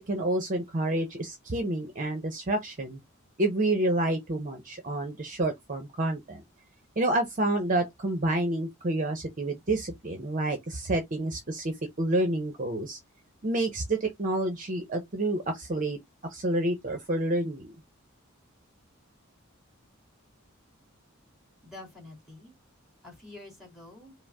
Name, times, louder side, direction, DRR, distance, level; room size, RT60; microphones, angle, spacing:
voice 1, 0.0-3.0 3.4-6.4 7.0-13.0 13.4-16.0 16.3-17.7, right 1 dB, 40° right, 0.7 m, -29 dB
voice 2, 21.6-22.5 23.0-24.1, left 2 dB, ahead, 2.7 m, -47 dB
5.0 x 2.1 x 3.5 m
head